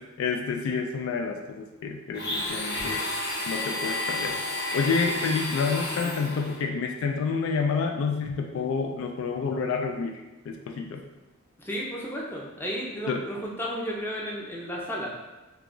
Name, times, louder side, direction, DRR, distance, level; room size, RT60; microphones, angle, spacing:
voice 1, 0.2-3.0 3.5-4.4 4.7-10.2 10.5-11.0 13.1-13.2, left 5 dB, 65° left, 3 dB, 0.3 m, -29 dB
Domestic sounds home sounds, 2.1-6.6, left 2 dB, 50° left, 0.7 m, -31 dB
voice 2, 11.6-15.1, equal, 10° left, -3 dB, 0.5 m, -33 dB
2.9 x 2.3 x 3.7 m, 1.1 s
head